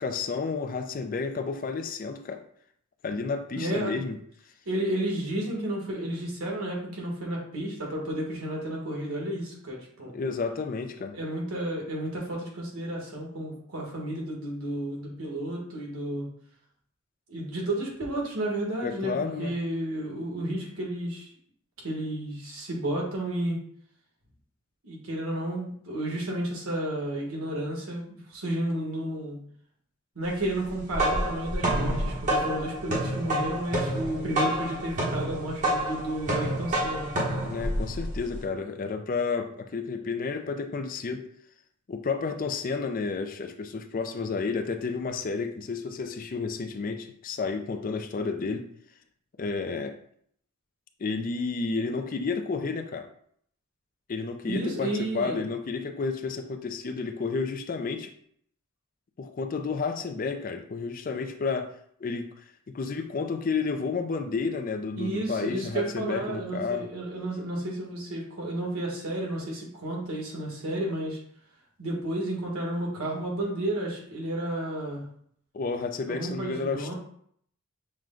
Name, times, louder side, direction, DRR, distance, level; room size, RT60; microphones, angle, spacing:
voice 1, 0.0-2.4 3.0-4.2 10.1-11.2 18.8-19.5 37.4-41.3 41.9-48.7 49.4-50.0 51.0-53.1 54.1-58.1 59.2-61.7 62.0-62.3 62.7-66.9 75.5-76.9, left 4 dB, 40° left, 6 dB, 0.4 m, -31 dB
voice 2, 3.5-4.1 4.6-10.1 11.1-16.3 17.3-21.3 21.8-23.6 24.8-29.4 30.1-37.3 54.4-55.4 65.0-71.2 71.8-75.1 76.1-76.9, right 1 dB, 85° right, -2 dB, 1.5 m, -32 dB
sound 1, 30.7-38.4, right 1 dB, 35° right, 1.1 m, -28 dB
6.2 x 2.2 x 3.7 m, 0.65 s
head